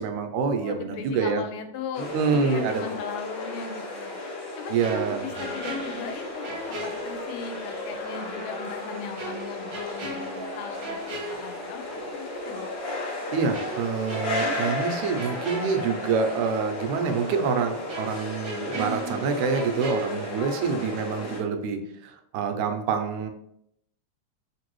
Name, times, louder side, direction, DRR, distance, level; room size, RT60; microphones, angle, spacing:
voice 1, 0.0-1.4 2.0-3.0 4.7-5.5 13.3-23.3, right 5 dB, 85° right, 6 dB, 2.0 m, -27 dB
voice 2, 0.6-4.2 4.6-12.7, left 6 dB, 90° left, 6 dB, 2.0 m, -38 dB
sound 1, 1.9-21.4, left 2 dB, 55° left, 1.2 m, -34 dB
sound 2, 4.8-7.7 8.1-8.2 9.2-12.1 12.4-12.6 13.5-16.5 16.8-16.9 17.9-20.9 21.2-21.4, right 1 dB, 65° right, 1.1 m, -38 dB
4.6 x 2.6 x 3.0 m, 0.74 s
omnidirectional pair, 3.3 m